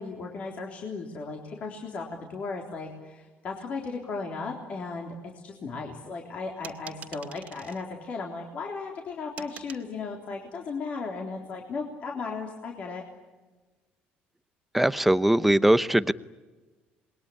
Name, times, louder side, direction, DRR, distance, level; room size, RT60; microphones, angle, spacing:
voice 1, 0.0-5.1 5.4-13.0, left 4 dB, 40° left, 1 dB, 3.6 m, -36 dB
sound 1, 6.6-7.8 9.4-9.9, right 8 dB, 40° right, 2.3 m, -44 dB
voice 2, 14.7-16.1, right 1 dB, 5° right, 13 dB, 0.8 m, -21 dB
27.5 x 21.5 x 10.0 m, 1.3 s
cardioid pair, 155°, 4 cm